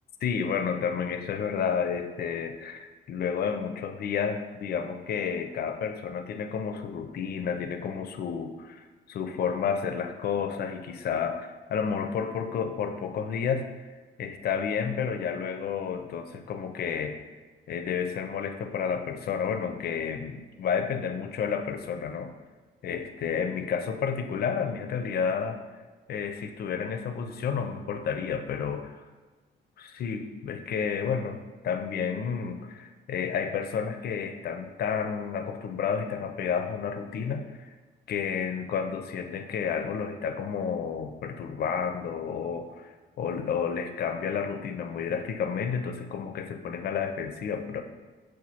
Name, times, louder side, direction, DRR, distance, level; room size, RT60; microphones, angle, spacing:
voice 1, 0.2-13.7 14.2-17.2 17.7-22.3 22.8-25.6 26.1-28.9 29.8-31.4 31.6-37.7 38.1-47.8, left 6 dB, 50° left, 7 dB, 0.4 m, -31 dB
6.1 x 2.2 x 2.8 m, 1.3 s
cardioid pair, 90°, 20 cm